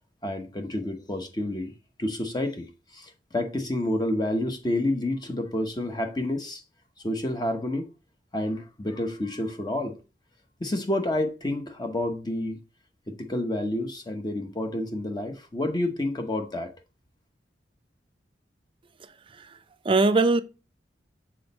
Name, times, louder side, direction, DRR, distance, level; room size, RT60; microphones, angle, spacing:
voice 1, 0.2-1.7 2.0-6.6 7.0-7.9 8.3-10.0 10.6-12.6 13.1-16.7, left 1 dB, 25° left, 0.9 m, -29 dB
voice 2, 19.8-20.4, right 3 dB, 30° right, 0.4 m, -21 dB
6.2 x 4.3 x 4.1 m
head